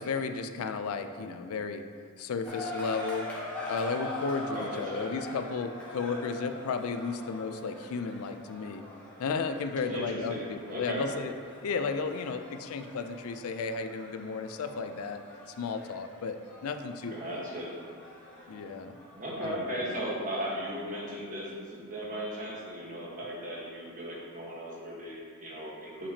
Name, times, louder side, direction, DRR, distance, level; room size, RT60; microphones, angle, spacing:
voice 1, 0.0-1.9 2.2-3.3 3.7-8.9 9.2-11.3 11.6-15.2 15.5-17.4 18.5-19.0 19.4-19.6, left 4 dB, 75° left, 8 dB, 0.4 m, -34 dB
sound 1, 2.4-19.3, left 1 dB, 5° left, 1.2 m, -43 dB
voice 2, 4.5-5.1 9.9-11.0 17.1-17.8 19.1-26.1, equal, 40° right, -5 dB, 1.3 m, -37 dB
6.8 x 5.6 x 2.8 m, 2.2 s
head